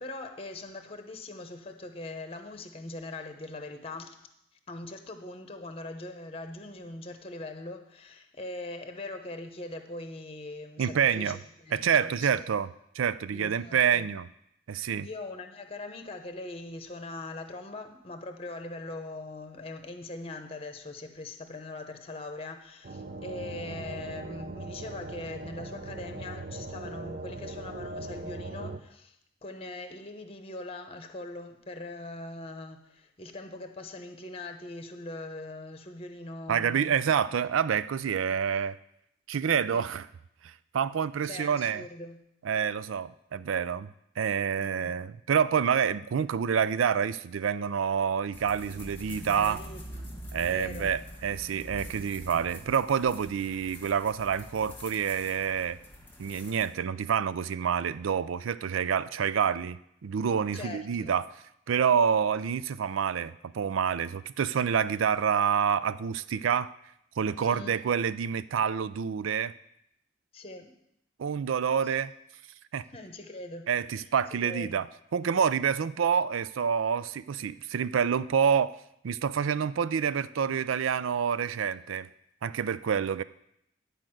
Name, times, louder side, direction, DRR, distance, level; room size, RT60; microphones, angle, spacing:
voice 1, 0.0-4.1 4.7-12.5 13.3-14.1 15.0-36.9 39.7-39.9 41.3-42.2 44.6-45.0 49.3-50.2 50.5-50.9 60.5-61.1 67.4-67.8 70.3-70.7 71.8-71.9 72.9-74.1 74.4-74.9, left 2 dB, 30° left, 7 dB, 0.9 m, -41 dB
voice 2, 10.8-11.4 11.7-12.7 13.0-14.3 14.7-15.1 36.5-38.8 39.3-40.1 40.4-41.8 42.4-43.9 44.2-49.6 50.3-55.8 56.2-61.2 61.7-66.7 67.2-69.5 71.2-72.1 72.7-72.8 73.7-74.8 75.1-78.8 79.0-82.1 82.4-83.2, right 7 dB, 90° right, 16 dB, 0.4 m, -27 dB
sound 1, 22.8-28.8, right 2 dB, 50° right, 0.6 m, -40 dB
sound 2, 48.3-56.7, equal, 10° left, 1.3 m, -45 dB
10.5 x 5.1 x 7.6 m, 0.77 s
head